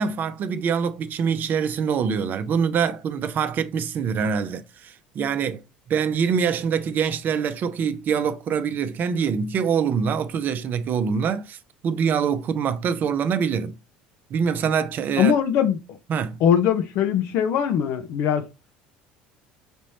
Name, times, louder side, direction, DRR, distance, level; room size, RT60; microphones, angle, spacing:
voice 1, 0.0-5.6 5.9-11.6 11.8-13.7 14.3-15.3 16.1-16.4, right 6 dB, 45° right, 0.7 m, -24 dB
voice 2, 15.2-15.8 16.4-18.5, left 8 dB, 60° left, 0.9 m, -21 dB
5.2 x 3.1 x 2.9 m
hypercardioid pair, 75°, 4 cm